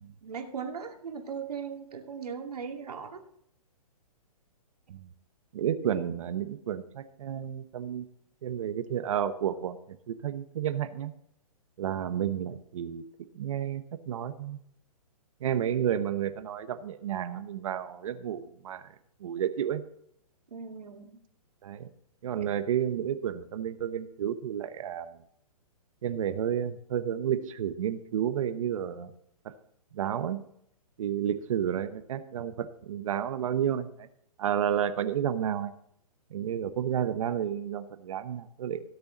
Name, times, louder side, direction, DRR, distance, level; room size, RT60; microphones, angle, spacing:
voice 1, 0.2-3.2 5.8-6.0 20.5-21.1, right 6 dB, 85° right, 2 dB, 2.5 m, -38 dB
voice 2, 5.5-8.1 8.4-9.8 10.1-11.1 11.8-13.0 13.3-14.6 15.4-18.8 19.2-19.8 21.6-21.9 22.2-25.1 26.0-29.1 29.9-30.4 31.0-34.1 34.4-35.7 36.3-38.8, right 9 dB, 60° right, 11 dB, 1.0 m, -31 dB
18.0 x 6.9 x 4.0 m, 0.73 s
hypercardioid pair, 140°, 19 cm